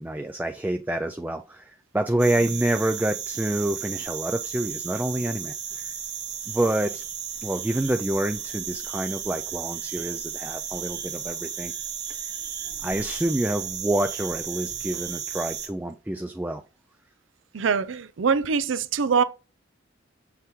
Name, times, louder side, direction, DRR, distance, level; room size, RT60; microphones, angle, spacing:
voice 1, 0.0-5.9 6.5-7.0 7.4-11.7 12.1-12.2 12.8-16.6, right 1 dB, 10° right, 0.3 m, -27 dB
sound 1, 2.2-15.7, right 8 dB, 60° right, 1.3 m, -34 dB
voice 2, 17.5-19.2, right 5 dB, 75° right, 0.5 m, -23 dB
6.9 x 5.8 x 3.1 m
head